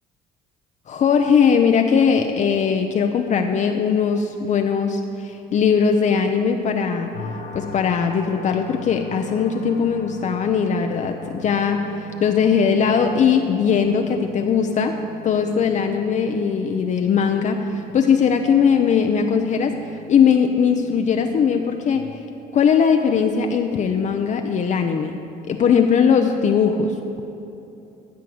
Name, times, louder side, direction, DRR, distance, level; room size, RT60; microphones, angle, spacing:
voice 1, 0.9-7.1 7.5-15.0 15.2-19.7 20.1-22.0 22.5-25.2 25.5-26.9, left 6 dB, 45° left, 5 dB, 0.6 m, -19 dB
sound 1, 7.1-21.9, left 4 dB, 65° left, 1.6 m, -40 dB
13.0 x 4.6 x 7.7 m, 2.9 s
cardioid pair, 110°, 17 cm